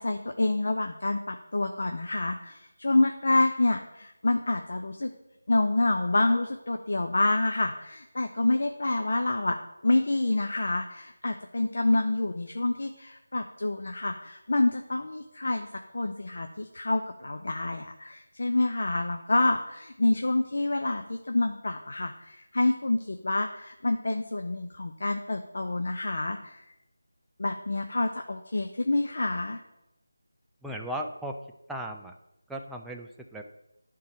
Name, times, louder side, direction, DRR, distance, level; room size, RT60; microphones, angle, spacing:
voice 1, 0.0-5.1 5.5-9.6 9.8-15.7 15.9-26.6 27.4-29.6, left 2 dB, 60° left, 5 dB, 0.6 m, -27 dB
voice 2, 30.6-31.4 31.7-32.2 32.5-33.4, right 1 dB, ahead, 0 dB, 0.3 m, -36 dB
11.0 x 3.8 x 4.2 m, 0.88 s
figure-of-eight pair, 170°, 0 cm